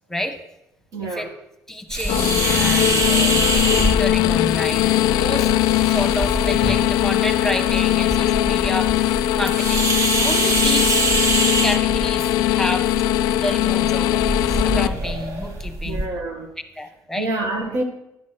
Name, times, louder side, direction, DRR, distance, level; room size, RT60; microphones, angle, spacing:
voice 1, 0.9-1.3 15.8-16.5 17.2-17.8, right 2 dB, 75° right, 1.7 m, -27 dB
voice 2, 1.7-3.4 3.7-5.5 5.8-11.1 11.6-12.9 13.4-16.0 16.7-17.3, left 1 dB, 5° left, 1.1 m, -29 dB
sound 1, 1.9-16.1, right 2 dB, 60° right, 1.6 m, -25 dB
sound 2, 2.0-11.2, equal, 20° right, 1.4 m, -32 dB
sound 3, 2.1-14.9, left 14 dB, 80° left, 0.3 m, -20 dB
9.9 x 6.3 x 5.9 m
supercardioid pair, 85°, 7 cm